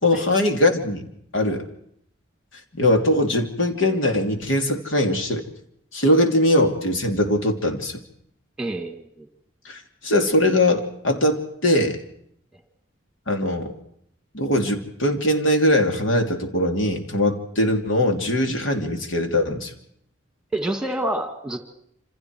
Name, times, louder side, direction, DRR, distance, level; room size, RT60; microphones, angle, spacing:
voice 1, 0.0-1.7 2.7-5.4 5.9-8.0 9.6-12.0 13.3-13.7 14.3-19.7, left 1 dB, 75° left, 4 dB, 2.8 m, -21 dB
voice 2, 8.6-9.3 20.5-21.6, right 1 dB, 5° right, 5 dB, 2.2 m, -28 dB
27.5 x 27.0 x 4.8 m, 0.71 s
head